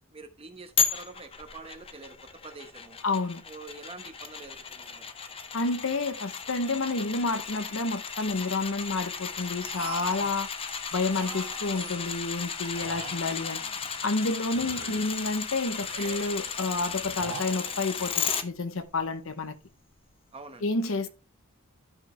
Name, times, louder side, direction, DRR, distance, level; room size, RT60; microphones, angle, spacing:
voice 1, 0.1-2.2 2.4-3.0 3.5-5.1 20.3-20.6, right 3 dB, 25° right, 1.1 m, -46 dB
sound 1, 0.8-18.4 18.9-19.0, left 6 dB, 25° left, 0.6 m, -35 dB
voice 2, 3.0-3.4 5.5-10.5 10.9-13.6 14.0-19.6 20.6-21.1, left 3 dB, 65° left, 0.9 m, -29 dB
sound 2, 9.6-10.4 11.1-12.2 12.7-14.1 14.5-15.3 15.8-16.5 17.0-18.1, right 4 dB, 70° right, 1.4 m, -43 dB
12.0 x 5.2 x 3.2 m
head